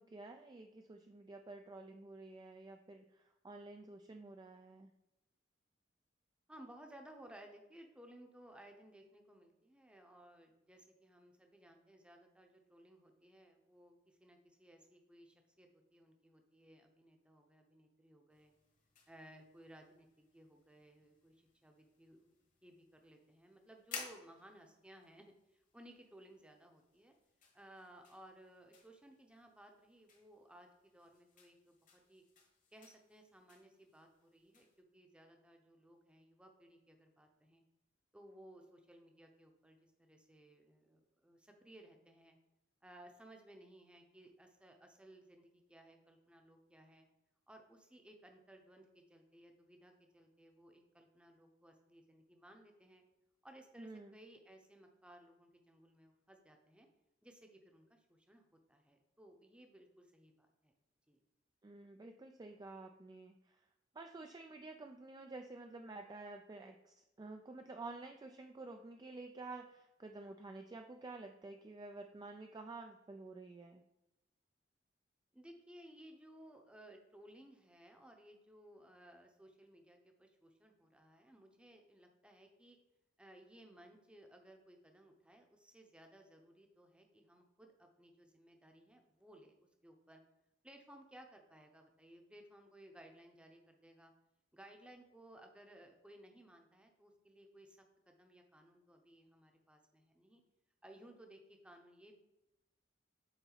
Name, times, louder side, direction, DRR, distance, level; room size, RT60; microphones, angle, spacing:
voice 1, 0.0-4.9 53.8-54.1 61.6-63.6 63.9-73.8, right 3 dB, 20° right, 4 dB, 0.3 m, -51 dB
voice 2, 6.5-18.5 19.1-22.3 22.6-27.1 27.5-32.2 32.7-37.6 38.1-42.4 42.8-47.1 47.5-53.0 53.4-56.9 57.2-60.7 61.1-61.2 75.3-82.8 83.2-89.5 89.8-90.2 90.6-94.1 94.5-100.4 100.8-102.1, right 1 dB, 5° right, 3 dB, 0.7 m, -60 dB
sound 1, 18.3-34.8, left 5 dB, 45° left, 1.2 m, -57 dB
7.1 x 3.9 x 3.9 m, 0.95 s
head